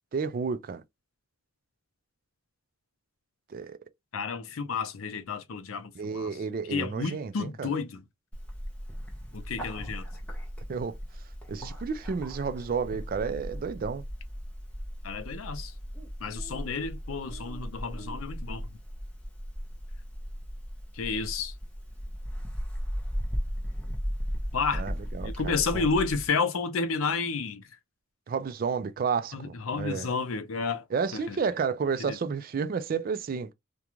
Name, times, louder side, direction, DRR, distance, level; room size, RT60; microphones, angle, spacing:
voice 1, 0.1-0.8 3.5-3.8 6.0-7.7 10.7-10.9 11.5-14.0 24.7-25.9 28.3-30.1 30.9-33.5, right 5 dB, 45° right, 0.3 m, -31 dB
voice 2, 4.1-6.3 6.7-8.0 9.3-10.1 15.0-15.7 16.2-18.7 20.9-21.5 24.5-24.8 25.2-27.7 29.3-30.8 31.1-31.4 32.0-32.2, left 4 dB, 85° left, 0.5 m, -31 dB
Bird, 8.3-26.3, equal, 5° left, 0.7 m, -37 dB
2.4 x 2.2 x 2.9 m
head